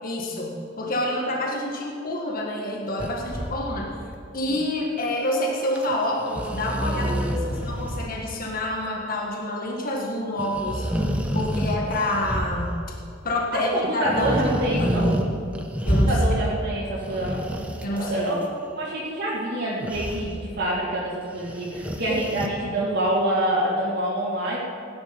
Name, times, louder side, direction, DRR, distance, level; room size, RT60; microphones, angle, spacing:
voice 1, 0.0-3.9 4.3-10.9 11.3-12.8 13.2-15.2 15.8-16.2 17.8-18.4 22.1-22.2, left 1 dB, 45° left, -1 dB, 1.6 m, -28 dB
sound 1, 3.0-4.2 5.8-5.9 6.2-8.2 8.4-8.5 10.4-13.0 14.0-15.3 15.5-16.5 16.9-18.3 19.8-20.3 21.4-22.5, equal, 5° right, 0.9 m, -27 dB
voice 2, 6.9-7.7 13.5-15.1 16.1-17.4 17.9-18.4 18.8-24.6, right 1 dB, 55° right, -9 dB, 2.3 m, -26 dB
16.5 x 10.5 x 5.3 m, 2.3 s
head